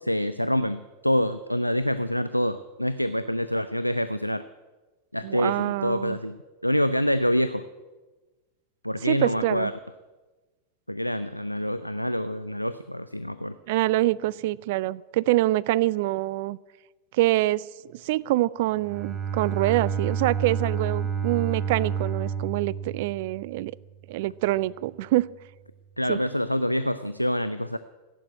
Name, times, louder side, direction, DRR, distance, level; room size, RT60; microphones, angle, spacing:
voice 1, 0.0-4.4 5.1-6.4 6.6-7.6 8.8-9.7 10.9-13.6 26.0-27.8, equal, 90° left, 12 dB, 0.5 m, -26 dB
voice 2, 5.2-6.2 9.1-9.7 13.7-16.6 17.1-17.6 17.9-23.7 24.1-25.3 26.1-26.2, right 17 dB, 50° right, 23 dB, 0.4 m, -25 dB
Bowed string instrument, 18.8-23.7, right 7 dB, 10° right, 3.1 m, -29 dB
16.0 x 9.1 x 9.5 m, 1.2 s
figure-of-eight pair, 90°, 0 cm